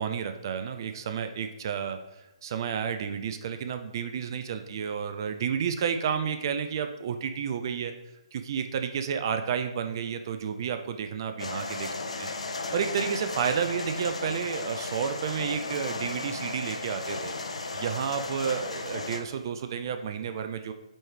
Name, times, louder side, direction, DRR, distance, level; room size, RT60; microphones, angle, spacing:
voice 1, 0.0-7.9 8.3-11.9 12.2-12.3 12.7-17.3 17.7-20.7, right 7 dB, 40° right, 8 dB, 0.4 m, -31 dB
sound 1, 11.4-19.2, left 3 dB, 70° left, 0.8 m, -35 dB
8.5 x 3.2 x 4.7 m, 0.99 s
figure-of-eight pair, 130°, 3 cm